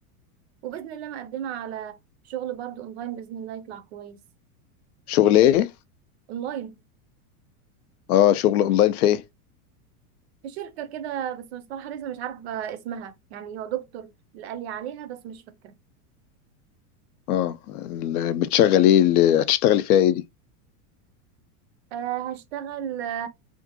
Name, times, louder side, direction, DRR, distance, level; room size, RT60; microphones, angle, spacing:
voice 1, 0.6-2.0 2.2-4.2 6.3-6.8 10.4-15.7 21.9-23.3, right 10 dB, 50° right, 0.4 m, -34 dB
voice 2, 5.1-5.7 8.1-9.2 17.3-20.2, left 11 dB, 75° left, 0.6 m, -19 dB
2.6 x 2.5 x 2.8 m
supercardioid pair, 165°, 45 cm